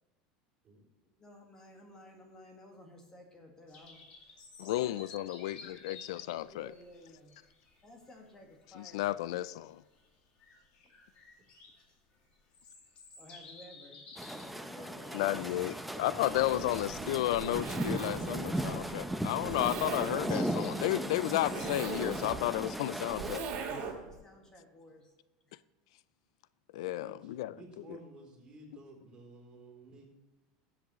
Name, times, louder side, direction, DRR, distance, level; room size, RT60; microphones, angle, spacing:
voice 1, 1.0-4.0 4.7-5.0 6.4-7.3 7.8-9.1 13.2-15.5 23.6-25.1 25.4-25.6, left 1 dB, 20° left, 1.6 m, -54 dB
sound 1, 3.7-22.2, left 4 dB, 45° left, 2.3 m, -55 dB
voice 2, 4.6-6.7 8.7-9.8 15.1-23.8 26.7-27.6, left 15 dB, 85° left, 0.3 m, -33 dB
sound 2, 14.2-23.4, right 1 dB, ahead, 0.6 m, -37 dB
voice 3, 15.9-17.5 27.0-30.1, right 2 dB, 30° right, 3.4 m, -52 dB
Zipper (clothing), 16.2-24.2, right 5 dB, 50° right, 2.2 m, -41 dB
14.0 x 8.0 x 3.1 m
supercardioid pair, 140°, 3 cm